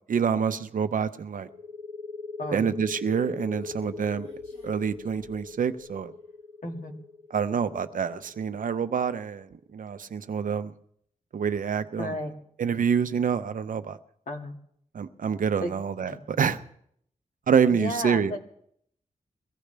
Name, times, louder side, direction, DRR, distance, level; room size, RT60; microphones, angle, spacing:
voice 1, 0.1-1.5 2.5-4.3 4.6-6.1 7.3-10.7 11.3-12.2 12.6-14.0 14.9-16.6 17.5-18.4, right 7 dB, 75° right, 10 dB, 0.7 m, -27 dB
sound 1, 1.5-8.9, left 3 dB, 20° left, 1.2 m, -40 dB
voice 2, 2.4-2.7 6.6-6.9 12.0-12.4 14.3-14.5 15.6-15.7 16.1-16.2 17.7-18.4, left 1 dB, 70° left, 2 dB, 2.2 m, -33 dB
Human voice, 2.9-6.0, left 2 dB, 55° left, 4.3 m, -56 dB
22.5 x 16.0 x 3.4 m, 0.69 s
wide cardioid pair, 145°, 14 cm